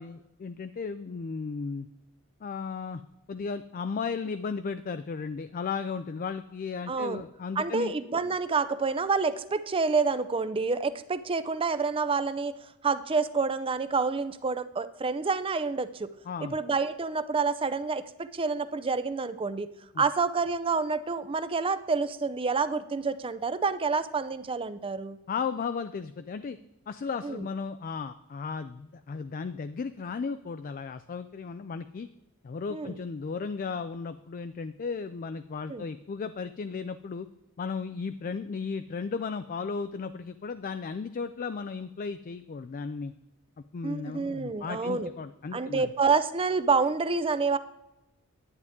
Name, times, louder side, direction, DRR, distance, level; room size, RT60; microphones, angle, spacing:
voice 1, 0.0-1.9 2.4-3.0 3.3-7.9 16.3-16.6 19.9-20.0 25.3-26.6 26.9-32.1 32.4-37.3 37.6-43.1 43.7-45.9, left 5 dB, 40° left, 11 dB, 0.3 m, -35 dB
voice 2, 6.9-7.2 7.6-12.5 12.8-16.1 16.5-19.7 20.0-25.2 27.2-27.5 32.7-33.0 35.7-35.9 43.8-45.1 45.5-47.6, right 4 dB, 25° right, 13 dB, 0.5 m, -28 dB
11.0 x 9.3 x 3.6 m, 0.94 s
head